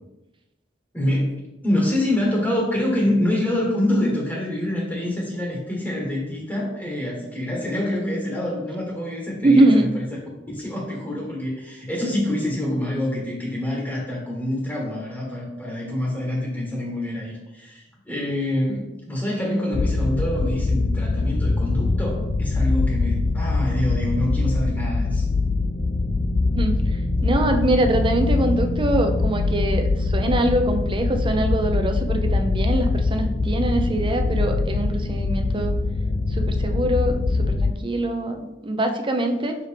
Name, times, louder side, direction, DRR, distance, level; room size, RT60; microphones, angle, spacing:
voice 1, 0.9-10.1 10.5-25.3, left 1 dB, 10° left, -3 dB, 1.3 m, -26 dB
voice 2, 9.4-9.9 26.5-35.8 36.3-39.6, right 1 dB, 30° right, 5 dB, 0.7 m, -23 dB
sound 1, 19.7-37.7, left 3 dB, 30° left, 0.3 m, -23 dB
6.2 x 4.8 x 3.4 m, 0.95 s
head